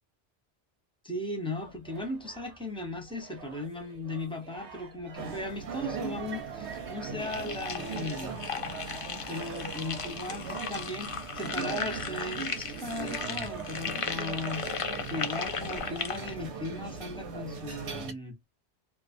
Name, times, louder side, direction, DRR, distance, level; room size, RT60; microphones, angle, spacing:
voice 1, 1.0-8.3 9.3-14.7 15.1-18.4, left 2 dB, 5° left, 0.6 m, -37 dB
sound 1, 1.6-18.0, right 4 dB, 45° right, 0.8 m, -49 dB
sound 2, 5.2-18.1, right 5 dB, 90° right, 1.1 m, -39 dB
sound 3, 7.2-16.3, left 6 dB, 60° left, 0.3 m, -36 dB
2.4 x 2.3 x 2.5 m
omnidirectional pair, 1.1 m